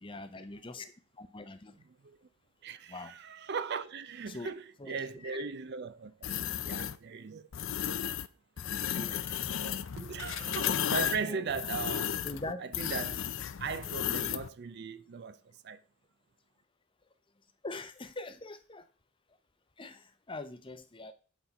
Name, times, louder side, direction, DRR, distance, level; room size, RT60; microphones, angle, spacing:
voice 1, 0.0-0.9 1.2-1.8 2.9-3.1 4.3-4.5 4.8-5.0 5.3-5.4 8.9-9.3 9.6-9.8 10.6-11.0 11.2-11.5 12.2-12.7 17.6-18.9 19.8-21.1, left 2 dB, 25° left, 0.7 m, -43 dB
voice 2, 2.6-6.2 6.6-7.5 7.9-8.2 9.1-9.4 10.0-12.2 12.6-13.2 13.6-15.8, right 5 dB, 50° right, 0.4 m, -38 dB
sound 1, 6.2-7.0 7.5-8.3 8.6-14.5, left 9 dB, 60° left, 0.5 m, -34 dB
8.1 x 4.3 x 5.3 m
head